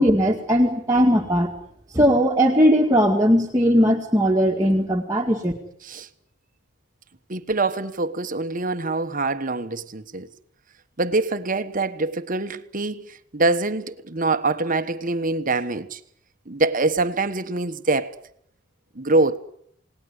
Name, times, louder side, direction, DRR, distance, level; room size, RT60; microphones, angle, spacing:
voice 1, 0.0-1.5 1.9-5.5, equal, 15° right, 2.1 m, -18 dB
voice 2, 7.3-10.3 11.0-16.0 16.5-18.1 18.9-19.4, right 3 dB, 40° right, 1.3 m, -24 dB
28.5 x 19.0 x 9.8 m
head